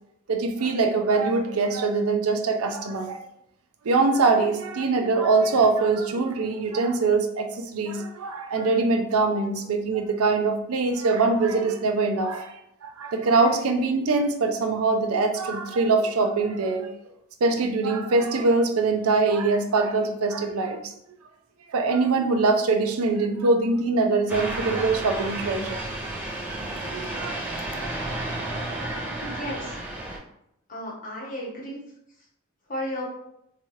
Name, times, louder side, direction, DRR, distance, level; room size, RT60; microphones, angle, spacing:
voice 1, 0.3-3.2 3.8-12.5 12.8-16.9 17.4-20.8 21.7-25.9 26.9-27.4, right 3 dB, 80° right, 6 dB, 0.5 m, -23 dB
sound 1, 24.3-30.2, right 1 dB, 10° right, 1.0 m, -32 dB
voice 2, 29.2-29.7 30.7-31.8 32.7-33.1, equal, 40° left, -4 dB, 1.2 m, -33 dB
3.6 x 2.8 x 3.1 m, 0.78 s
head